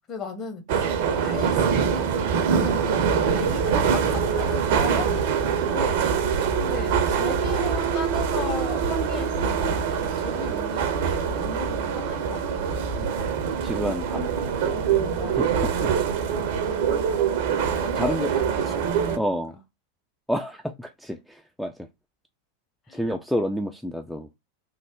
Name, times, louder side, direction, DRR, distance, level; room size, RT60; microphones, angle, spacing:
voice 1, 0.0-2.1 2.5-12.9 14.7-15.8 16.5-17.2 17.5-19.4 22.9-23.0, left 5 dB, 30° left, 0.9 m, -37 dB
sound 1, 0.7-19.2, right 7 dB, 50° right, 0.6 m, -24 dB
voice 2, 13.6-14.7 15.6-15.7 18.0-18.3 19.2-19.6 20.3-21.9 22.9-24.3, equal, ahead, 0.3 m, -29 dB
3.2 x 2.1 x 3.5 m
figure-of-eight pair, 90°, 0 cm